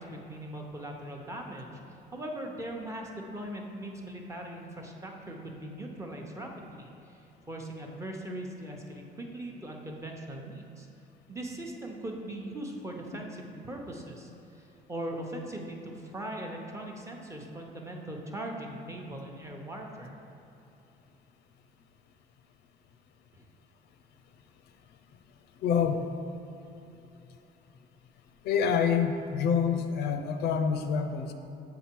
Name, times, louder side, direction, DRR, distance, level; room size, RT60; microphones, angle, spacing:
voice 1, 0.0-10.9 11.3-20.2 23.3-23.5, right 1 dB, 15° right, 0 dB, 0.8 m, -40 dB
voice 2, 25.6-26.1 28.4-31.3, left 6 dB, 75° left, 7 dB, 0.5 m, -27 dB
7.1 x 3.8 x 4.5 m, 2.9 s
cardioid pair, 110°, 17 cm